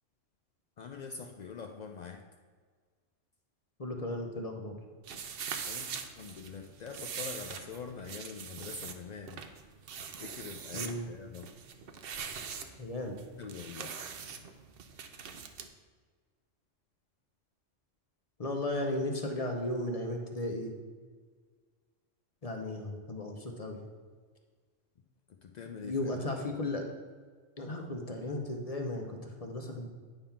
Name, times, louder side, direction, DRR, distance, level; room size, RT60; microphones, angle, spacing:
voice 1, 0.8-2.3 5.7-9.4 10.0-11.5 13.4-13.9 25.3-26.3, left 6 dB, 85° left, 4 dB, 0.3 m, -44 dB
voice 2, 3.8-4.8 10.7-11.1 12.8-13.2 18.4-20.7 22.4-23.8 25.8-26.9 27.6-29.9, left 1 dB, 35° left, 2 dB, 0.7 m, -35 dB
sound 1, 5.0-15.7, right 6 dB, 60° right, 0.7 m, -42 dB
8.9 x 3.6 x 5.7 m, 1.5 s
omnidirectional pair, 1.3 m